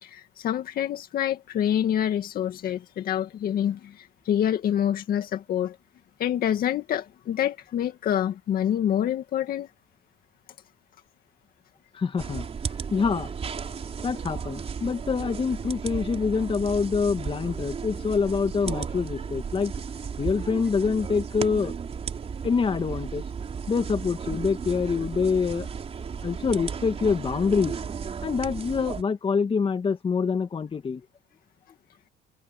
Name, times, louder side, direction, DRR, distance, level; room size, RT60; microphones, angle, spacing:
voice 1, 0.0-5.8 6.2-9.7, left 10 dB, 60° left, 2.1 m, -27 dB
voice 2, 11.9-12.5 12.9-13.3 14.0-19.7 20.2-21.7 22.4-23.2 23.7-25.7 26.2-27.8 28.2-31.0, left 5 dB, 30° left, 2.3 m, -25 dB
sound 1, 12.2-29.0, right 6 dB, 35° right, 4.0 m, -34 dB
cardioid pair, 110°, 17 cm